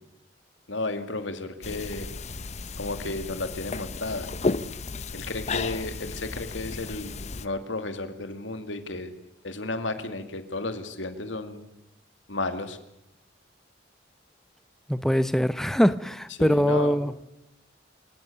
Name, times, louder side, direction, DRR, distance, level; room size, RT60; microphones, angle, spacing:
voice 1, 0.7-2.1 2.8-4.3 5.1-7.1 7.4-9.1 9.4-11.7 12.3-12.8 16.4-16.9, left 2 dB, 90° left, 8 dB, 2.4 m, -33 dB
sound 1, 1.6-7.5, left 3 dB, 35° left, 0.7 m, -33 dB
voice 2, 14.9-17.1, equal, ahead, 13 dB, 0.8 m, -22 dB
27.5 x 17.5 x 6.9 m, 0.87 s
head